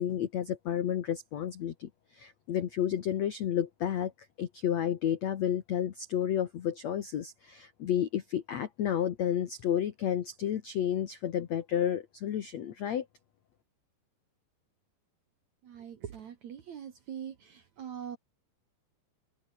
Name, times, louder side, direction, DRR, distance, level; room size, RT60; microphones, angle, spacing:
voice 1, 0.0-4.1 4.4-13.0, left 10 dB, 80° left, 1.5 m, -31 dB
voice 2, 15.7-17.3 17.8-18.2, right 8 dB, 55° right, 2.1 m, -42 dB
omnidirectional pair, 5.2 m